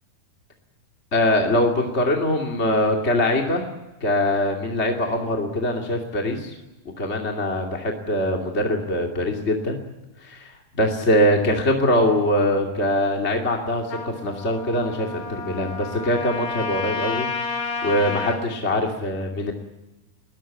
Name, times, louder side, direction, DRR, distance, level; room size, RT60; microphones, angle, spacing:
voice 1, 1.1-3.6 4.0-6.5 7.0-9.8 10.2-10.5 10.8-17.3 17.8-19.5, left 1 dB, 20° left, 1 dB, 2.0 m, -22 dB
Trumpet, 13.9-18.4, left 4 dB, 80° left, 7.0 m, -30 dB
22.0 x 20.0 x 9.1 m, 1.0 s
omnidirectional pair, 4.6 m